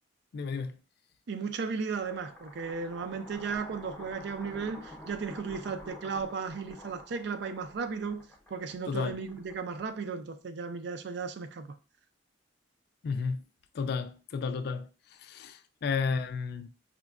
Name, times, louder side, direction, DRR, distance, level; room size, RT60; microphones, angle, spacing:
voice 1, 0.3-0.8 8.9-9.2 13.0-13.4 13.7-14.9 15.2-16.7, left 5 dB, 60° left, 0.3 m, -32 dB
voice 2, 1.3-11.8, right 5 dB, 65° right, 0.4 m, -35 dB
sound 1, 1.9-10.2, left 1 dB, 5° left, 0.6 m, -49 dB
4.9 x 2.2 x 2.3 m
head